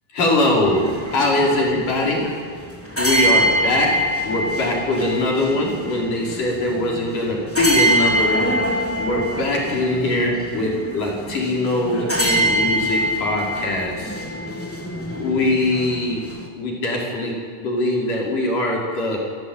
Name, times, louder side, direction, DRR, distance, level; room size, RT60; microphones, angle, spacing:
voice 1, 0.1-2.3 3.0-3.9 4.2-14.2 15.1-16.2 16.6-19.2, left 1 dB, 75° left, -2 dB, 7.1 m, -22 dB
sound 1, 0.6-16.5, equal, 5° left, 2.8 m, -24 dB
28.0 x 17.0 x 9.1 m, 2.1 s
omnidirectional pair, 3.7 m